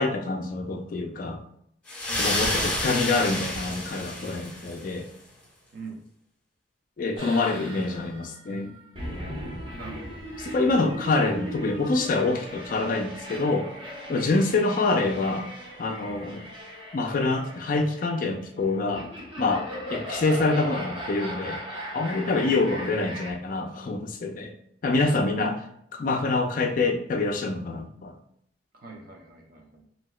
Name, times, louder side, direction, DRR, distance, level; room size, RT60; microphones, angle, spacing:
voice 1, 0.0-1.4 2.2-5.1 7.0-8.8 10.4-13.7 14.1-15.5 15.8-16.5 16.9-19.1 19.4-24.5 24.8-25.5 25.9-28.1, left 3 dB, 45° left, 4 dB, 0.3 m, -26 dB
sound 1, 1.9-4.9, left 1 dB, 5° left, 0.9 m, -29 dB
sound 2, 7.2-23.3, equal, 25° right, 0.9 m, -38 dB
voice 2, 9.7-10.2 14.1-14.4 22.2-22.5 25.2-25.8 28.7-29.8, right 3 dB, 50° right, 1 dB, 0.5 m, -42 dB
3.0 x 2.7 x 2.3 m, 0.70 s
head